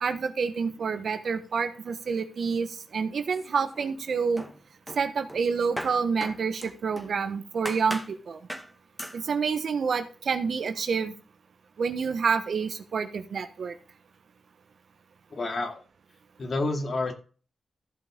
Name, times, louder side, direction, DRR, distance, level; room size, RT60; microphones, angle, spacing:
voice 1, 0.0-4.4 4.9-8.4 9.1-11.1 11.8-13.8, right 5 dB, 70° right, 9 dB, 1.1 m, -28 dB
sound 1, 3.3-4.0 4.4-7.2 7.7-8.2 8.5-8.7 9.0-9.2, equal, 5° left, 1.8 m, -38 dB
voice 2, 15.3-15.8 16.4-17.1, left 2 dB, 55° left, 4 dB, 2.3 m, -29 dB
14.5 x 5.8 x 3.8 m, 0.38 s
supercardioid pair, 45°, 0 cm